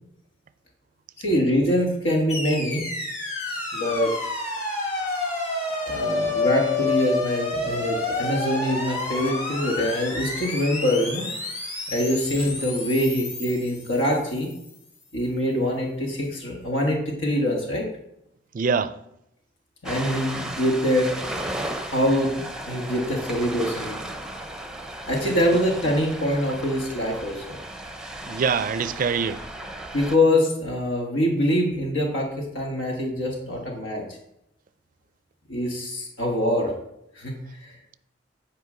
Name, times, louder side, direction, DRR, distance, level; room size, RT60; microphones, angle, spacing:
voice 1, 1.2-2.9 3.7-4.1 5.9-11.3 11.9-14.5 15.1-17.8 19.8-21.1 21.9-23.9 25.1-27.6 29.9-34.0 35.5-36.7 37.2-37.7, left 1 dB, 85° left, 1.5 m, -24 dB
sound 1, 2.3-14.5, left 3 dB, 40° left, 1.8 m, -29 dB
voice 2, 18.5-19.0 28.2-29.4, right 5 dB, 45° right, 0.4 m, -24 dB
Ocean, 19.8-30.2, right 1 dB, 5° right, 0.6 m, -35 dB
9.5 x 4.9 x 3.8 m
head